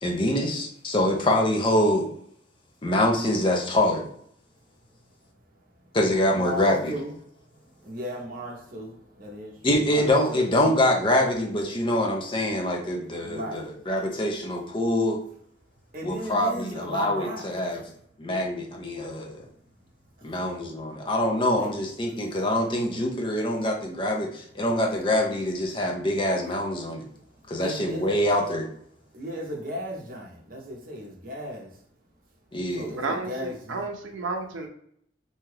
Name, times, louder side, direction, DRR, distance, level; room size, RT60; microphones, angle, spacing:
voice 1, 0.0-2.1 2.8-4.1 5.9-6.9 9.6-15.2 16.0-17.8 18.2-19.4 20.2-27.0 27.5-28.7 32.5-32.9, left 1 dB, 25° left, 1 dB, 0.5 m, -25 dB
voice 2, 6.3-7.2 7.8-8.9 9.2-10.5 13.2-13.6 15.9-17.4 21.6-21.7 27.6-28.1 29.1-31.7 32.8-33.8, equal, 45° right, 0 dB, 0.7 m, -36 dB
voice 3, 33.0-34.7, right 3 dB, 85° right, 2 dB, 0.5 m, -32 dB
2.7 x 2.3 x 3.2 m, 0.67 s
head